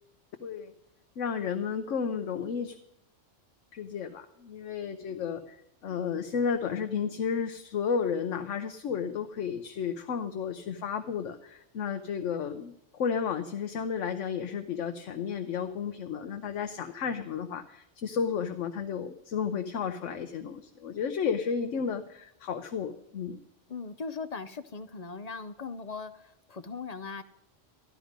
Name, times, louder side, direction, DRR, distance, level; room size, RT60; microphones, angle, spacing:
voice 1, 0.4-0.7 1.2-2.8 3.7-5.6 5.8-23.4, left 6 dB, 80° left, 6 dB, 1.1 m, -32 dB
voice 2, 23.7-27.2, left 4 dB, 45° left, 11 dB, 0.5 m, -39 dB
13.0 x 11.5 x 5.1 m, 0.76 s
omnidirectional pair, 1.2 m